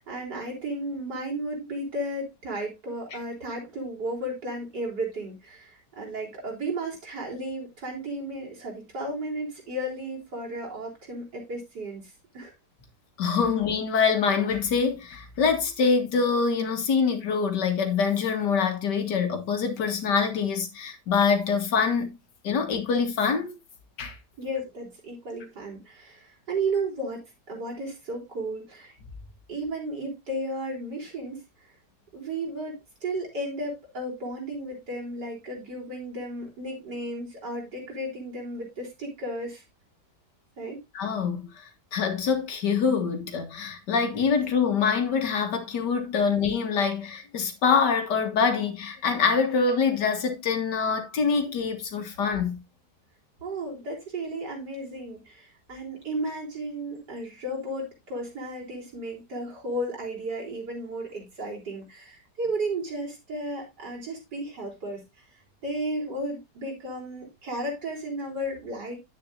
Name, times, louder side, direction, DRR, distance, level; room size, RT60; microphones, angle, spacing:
voice 1, 0.0-12.5 24.4-28.9 29.5-31.4 32.1-39.6 40.6-40.8 53.4-65.0 65.6-69.0, right 1 dB, 75° right, 4.3 m, -34 dB
voice 2, 13.2-22.1 22.4-23.5 24.0-24.2 40.9-41.5 41.9-52.6, left 5 dB, 80° left, 2.1 m, -25 dB
10.0 x 8.6 x 2.6 m
omnidirectional pair, 1.8 m